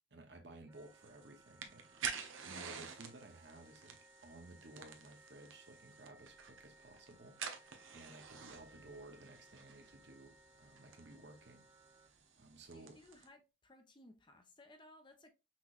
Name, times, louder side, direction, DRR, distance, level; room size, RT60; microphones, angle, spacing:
voice 1, 0.1-11.7 12.0-13.0, right 2 dB, 60° right, 1.0 m, -56 dB
Wind instrument woodwind instrument, 0.7-12.1, right 1 dB, 15° right, 0.4 m, -65 dB
sound 1, 0.8-13.3, right 7 dB, 85° right, 0.8 m, -50 dB
voice 2, 12.7-15.3, left 1 dB, 25° left, 0.6 m, -61 dB
5.8 x 3.0 x 2.5 m
head